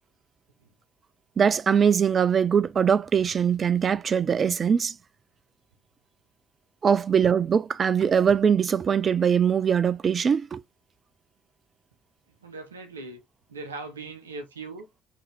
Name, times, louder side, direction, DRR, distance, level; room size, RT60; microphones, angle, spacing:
voice 1, 1.4-5.0 6.8-10.6, right 7 dB, 40° right, 0.3 m, -22 dB
voice 2, 12.4-13.2 13.5-14.9, right 3 dB, 85° right, 0.6 m, -39 dB
3.7 x 2.8 x 3.4 m
figure-of-eight pair, 50°, 0 cm